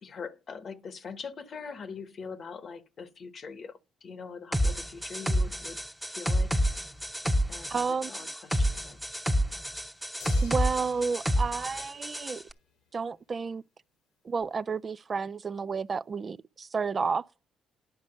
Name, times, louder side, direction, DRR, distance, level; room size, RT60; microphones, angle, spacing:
voice 1, 0.0-5.8 6.1-6.5 7.5-9.0, left 5 dB, 55° left, 1.1 m, -42 dB
sound 1, 4.5-12.4, equal, ahead, 0.9 m, -29 dB
voice 2, 7.7-8.1 10.4-12.4 12.9-13.6 14.2-17.3, right 5 dB, 45° right, 0.4 m, -31 dB
sound 2, 10.2-12.7 14.4-14.5, left 7 dB, 80° left, 1.5 m, -50 dB
10.0 x 5.0 x 6.4 m
hypercardioid pair, 55°, 0 cm